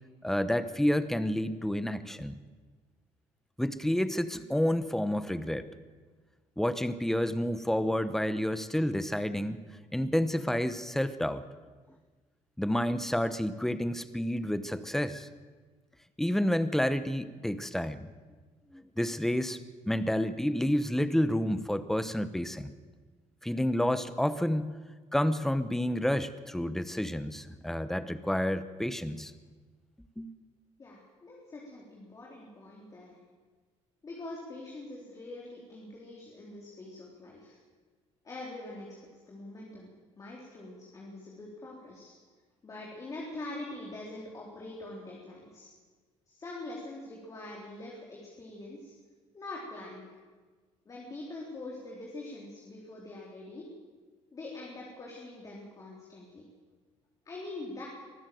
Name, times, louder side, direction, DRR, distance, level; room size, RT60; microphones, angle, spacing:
voice 1, 0.2-2.3 3.6-5.7 6.6-9.6 9.9-11.4 12.6-15.3 16.2-18.1 18.7-19.6 19.9-22.7 23.4-24.8 25.1-29.3 30.2-30.3, left 1 dB, 5° left, 13 dB, 1.0 m, -29 dB
voice 2, 30.8-33.2 34.0-37.6 38.2-38.9 39.3-42.1 42.6-45.7 46.3-48.9 49.3-50.1 50.9-53.7 54.3-56.4 57.3-57.9, left 2 dB, 30° left, -3 dB, 4.0 m, -44 dB
24.0 x 14.5 x 7.8 m, 1.4 s
cardioid pair, 130°, 12 cm